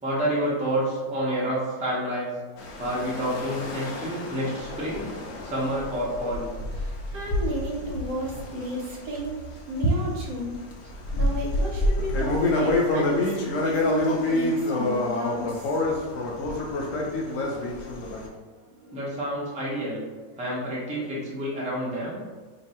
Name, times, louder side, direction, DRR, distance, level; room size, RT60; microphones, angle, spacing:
voice 1, 0.0-2.3 2.8-5.1 5.4-6.5 18.9-20.0 20.4-22.2, equal, 10° right, -7 dB, 0.3 m, -28 dB
sound 1, 2.6-9.3 9.8-18.3, left 2 dB, 75° left, 0.7 m, -28 dB
voice 2, 6.8-9.4 9.7-10.6 11.1-16.0 18.6-19.1, right 1 dB, 60° right, -2 dB, 1.2 m, -33 dB
2.9 x 2.6 x 4.1 m, 1.4 s
omnidirectional pair, 2.0 m